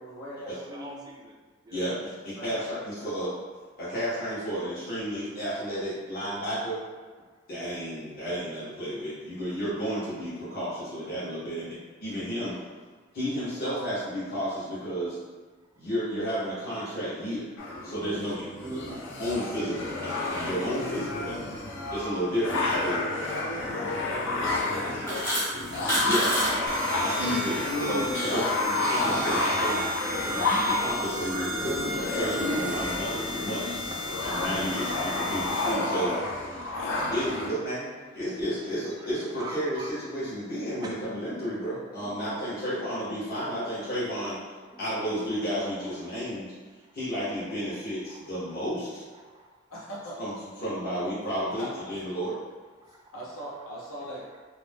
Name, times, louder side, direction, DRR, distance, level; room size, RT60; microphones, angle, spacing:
voice 1, 0.0-1.0 1.7-2.0 2.4-3.2 11.4-11.6 22.4-22.6 23.3-25.6 26.2-26.7 27.7-28.9 49.7-50.2 51.6-51.8 53.1-54.2, right 1 dB, 85° left, -7 dB, 0.9 m, -42 dB
voice 2, 0.6-1.4 1.6-1.8 18.1-18.9 25.6-25.9 33.4-36.3 36.6-37.1 39.0-39.9 40.8-40.9 44.7-46.2 46.9-47.0 47.7-47.8 48.1-48.2 49.2-49.5 52.8-53.1, right 1 dB, 20° right, -1 dB, 0.3 m, -45 dB
voice 3, 2.2-3.3 3.8-6.8 7.5-11.7 12.0-12.6 13.1-15.2 15.8-17.5 17.8-18.4 19.2-21.4 21.9-23.0 26.0-26.5 27.2-28.5 28.9-29.8 30.3-33.9 34.2-36.1 37.1-37.9 38.1-44.4 44.8-46.5 46.9-49.0 50.2-50.3 50.6-52.4, equal, 45° left, -11 dB, 0.8 m, -32 dB
sound 1, 17.6-37.5, left 2 dB, 60° left, 0.5 m, -30 dB
sound 2, 24.8-26.5 26.8-27.1 27.6-28.5, equal, 10° left, 0.7 m, -28 dB
sound 3, 26.7-35.7, equal, 90° right, 0.6 m, -35 dB
2.5 x 2.0 x 3.3 m, 1.4 s
head